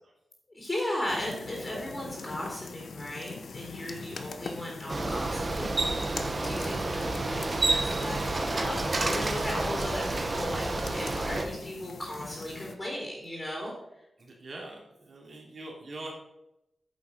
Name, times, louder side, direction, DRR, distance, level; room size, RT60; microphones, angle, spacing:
voice 1, 0.5-6.0 6.4-13.7, left 1 dB, 20° left, -3 dB, 3.1 m, -36 dB
sound 1, 1.1-12.7, left 5 dB, 70° left, 0.9 m, -43 dB
voice 2, 3.8-4.2 11.2-11.6 14.2-16.1, right 2 dB, 50° right, 0 dB, 3.0 m, -44 dB
Bicycle, 4.9-11.4, right 2 dB, 30° right, 1.1 m, -30 dB
9.3 x 7.0 x 5.5 m, 0.86 s
wide cardioid pair, 165°, 0 cm